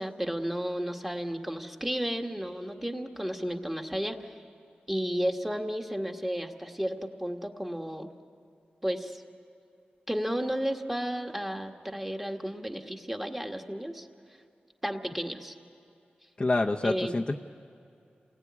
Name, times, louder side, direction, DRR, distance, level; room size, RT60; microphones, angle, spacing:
voice 1, 0.0-4.3 4.9-8.1 8.8-9.2 10.1-14.1 14.8-15.5 16.8-17.2, equal, 10° right, 3 dB, 1.6 m, -33 dB
voice 2, 16.4-17.3, left 2 dB, 30° left, 2 dB, 0.7 m, -27 dB
29.0 x 20.0 x 9.7 m, 2.6 s
wide cardioid pair, 115°, 3 cm